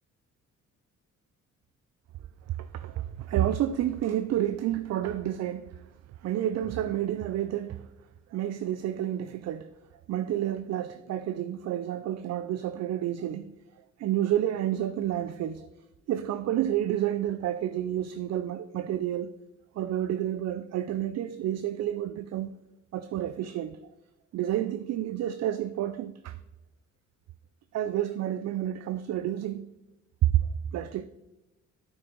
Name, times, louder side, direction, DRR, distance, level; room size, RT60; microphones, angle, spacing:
voice 1, 2.5-5.8 6.2-7.9 8.3-9.7 10.1-13.5 14.0-15.7 16.1-19.3 19.8-22.6 22.9-23.8 24.3-26.4 27.7-29.7 30.2-30.5 30.7-31.1, right 12 dB, 60° right, 11 dB, 0.5 m, -29 dB
9.2 x 5.9 x 3.9 m, 1.0 s
cardioid pair, 90°, 30 cm